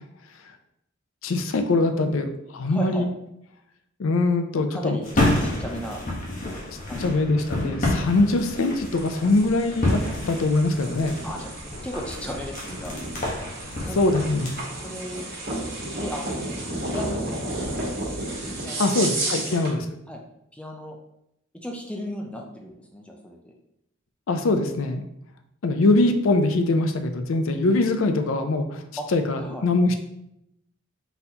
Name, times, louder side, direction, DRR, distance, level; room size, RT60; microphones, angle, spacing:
voice 1, 1.2-3.1 4.0-5.0 7.0-10.0 10.3-11.1 14.0-14.5 18.8-19.9 24.3-25.0 25.6-28.8 29.1-30.0, left 2 dB, 85° left, 7 dB, 0.5 m, -22 dB
voice 2, 2.7-3.1 4.7-5.0 5.4-6.0 6.8-7.2 11.2-11.5 11.8-13.0 13.8-14.1 14.8-15.3 15.9-16.3 16.9-17.5 18.6-19.6 20.1-20.2 20.5-21.0 21.6-23.5 29.0-29.1 29.3-29.6, equal, 5° left, 0 dB, 0.5 m, -35 dB
sound 1, 5.0-14.6, left 1 dB, 40° left, 1.0 m, -29 dB
sound 2, 8.8-19.8, right 2 dB, 50° right, 1.3 m, -33 dB
4.0 x 3.8 x 2.8 m, 0.80 s
head